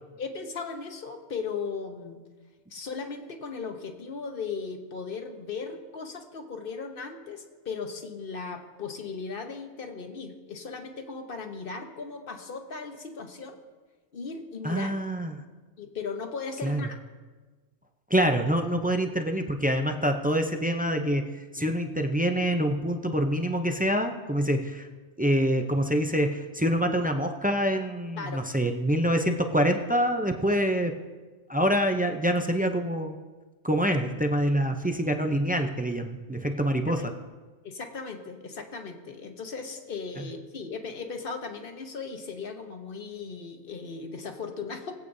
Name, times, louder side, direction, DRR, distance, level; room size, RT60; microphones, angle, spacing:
voice 1, 0.2-2.2 2.7-13.6 14.1-15.0 15.8-17.0 28.2-28.4 36.9-37.0 37.6-44.9, left 5 dB, 55° left, 5 dB, 1.2 m, -37 dB
voice 2, 14.6-15.4 16.6-16.8 18.1-24.9 25.2-30.9 31.5-33.1 33.6-37.1, equal, 15° right, 5 dB, 0.3 m, -26 dB
20.5 x 8.3 x 2.7 m, 1.3 s
omnidirectional pair, 1.2 m